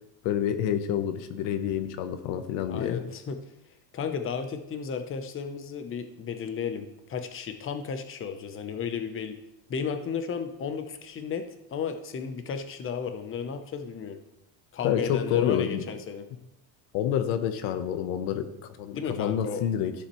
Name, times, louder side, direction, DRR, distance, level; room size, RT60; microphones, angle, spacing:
voice 1, 0.2-3.0 14.8-15.8 16.9-19.9, left 9 dB, 85° left, 9 dB, 1.1 m, -28 dB
voice 2, 2.7-3.4 3.9-9.4 9.7-14.2 14.7-16.2 18.9-19.6, left 6 dB, 30° left, 7 dB, 0.8 m, -33 dB
13.5 x 7.2 x 3.1 m, 0.89 s
cardioid pair, 135°, 44 cm